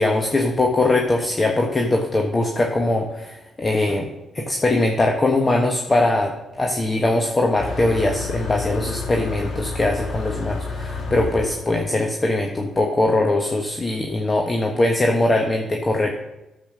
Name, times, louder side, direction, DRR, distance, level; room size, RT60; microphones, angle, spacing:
voice 1, 0.0-16.2, left 2 dB, 35° left, 2 dB, 1.3 m, -21 dB
Motor vehicle (road), 7.6-12.7, left 3 dB, 65° left, 2.8 m, -30 dB
10.5 x 7.3 x 6.2 m, 1.0 s
supercardioid pair, 50°, 0 cm